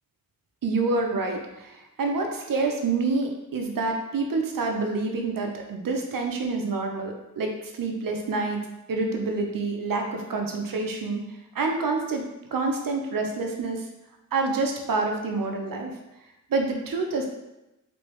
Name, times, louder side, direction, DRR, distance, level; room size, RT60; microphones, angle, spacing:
voice 1, 0.6-8.6 8.9-11.2 11.5-12.2 12.5-13.8 14.3-15.9 16.5-17.3, right 3 dB, 80° right, 3 dB, 0.6 m, -27 dB
3.3 x 3.2 x 3.1 m, 0.95 s
cardioid pair, 45°, 33 cm